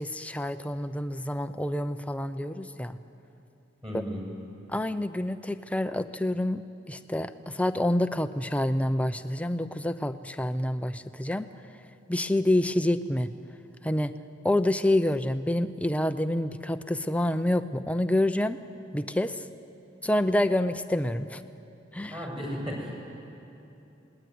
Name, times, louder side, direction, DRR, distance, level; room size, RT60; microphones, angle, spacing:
voice 1, 0.0-3.0 4.7-11.5 12.1-13.3 13.8-14.1 14.4-18.6 18.9-19.4 20.0-21.4 21.9-22.2, left 1 dB, 5° left, 10 dB, 0.6 m, -27 dB
voice 2, 3.8-4.2 22.1-22.9, equal, 25° right, -2 dB, 7.1 m, -34 dB
27.0 x 19.5 x 9.6 m, 2.9 s
head